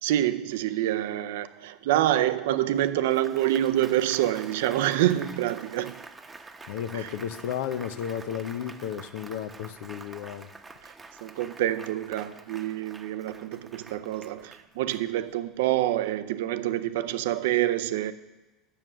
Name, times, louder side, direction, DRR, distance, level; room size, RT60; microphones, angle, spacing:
voice 1, 0.0-6.0 6.9-7.1 10.8-10.9 11.2-18.1, right 13 dB, 70° right, 0.5 m, -27 dB
Applause, 2.7-15.5, right 3 dB, 20° right, 0.9 m, -47 dB
voice 2, 6.7-10.5, left 9 dB, 70° left, 0.7 m, -33 dB
8.8 x 7.0 x 6.2 m
hypercardioid pair, 75°, 0 cm